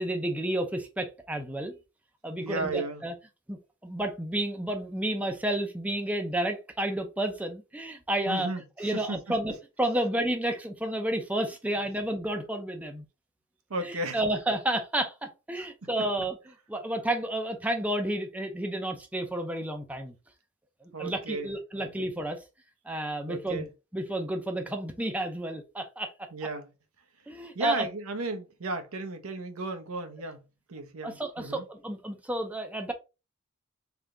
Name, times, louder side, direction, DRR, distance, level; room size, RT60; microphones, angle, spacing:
voice 1, 0.0-1.8 2.2-3.1 3.5-8.5 8.8-13.0 13.8-16.4 16.7-20.2 20.8-22.4 22.8-23.7 23.9-26.1 27.3-27.9 31.0-32.9, right 1 dB, 5° right, 0.6 m, -31 dB
voice 2, 2.4-3.0 8.3-8.6 8.9-9.2 13.7-14.2 15.6-15.9 20.9-22.1 23.3-23.7 26.3-26.7 27.5-30.4 30.7-31.6, right 2 dB, 90° right, 0.8 m, -34 dB
3.6 x 3.4 x 3.7 m
head